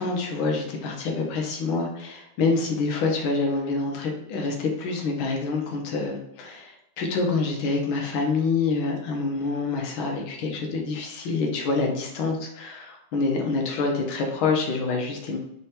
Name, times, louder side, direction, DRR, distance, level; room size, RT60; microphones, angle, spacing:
voice 1, 0.0-15.4, left 4 dB, 75° left, 2 dB, 1.6 m, -26 dB
4.3 x 3.4 x 2.8 m, 0.81 s
omnidirectional pair, 2.3 m